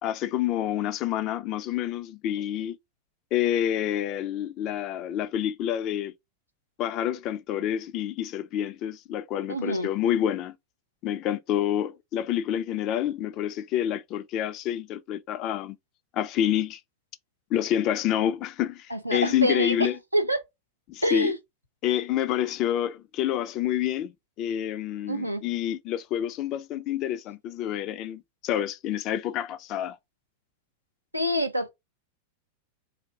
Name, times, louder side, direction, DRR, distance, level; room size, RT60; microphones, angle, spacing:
voice 1, 0.0-2.8 3.3-6.1 6.8-10.5 11.0-15.8 16.1-16.8 17.5-18.9 19.1-20.0 20.9-21.3 21.8-24.1 24.4-30.0, left 11 dB, 40° left, 0.5 m, -28 dB
voice 2, 9.5-9.9 18.9-20.4 21.0-21.4 25.1-25.4 31.1-31.7, equal, 90° right, 0.7 m, -26 dB
3.4 x 2.6 x 4.6 m
figure-of-eight pair, 90°, 0 cm